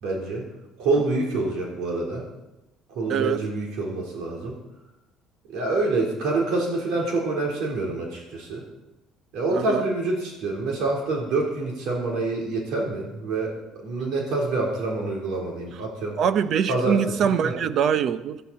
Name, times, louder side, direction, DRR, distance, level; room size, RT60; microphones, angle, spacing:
voice 1, 0.0-0.5 0.8-2.3 2.9-4.6 5.5-8.6 9.3-13.5 13.8-16.2 16.7-17.0 17.4-17.5, right 3 dB, 75° right, 3.8 m, -26 dB
voice 2, 3.1-3.4 9.5-9.8 16.2-18.4, right 7 dB, 50° right, 0.7 m, -23 dB
16.0 x 13.0 x 4.3 m
cardioid pair, 140°, 0 cm